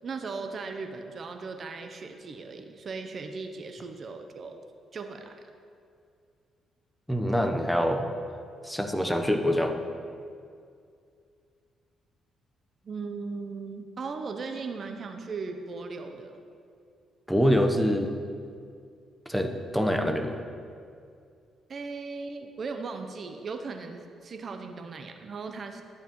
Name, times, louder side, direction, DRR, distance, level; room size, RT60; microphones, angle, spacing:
voice 1, 0.0-4.6 4.9-5.5 12.8-16.4 21.7-25.8, right 4 dB, 45° right, 6 dB, 0.6 m, -37 dB
voice 2, 7.1-8.0 8.6-9.7 17.3-18.1 19.3-20.3, equal, ahead, 5 dB, 0.8 m, -25 dB
11.5 x 9.1 x 3.0 m, 2.3 s
cardioid pair, 90°, 0 cm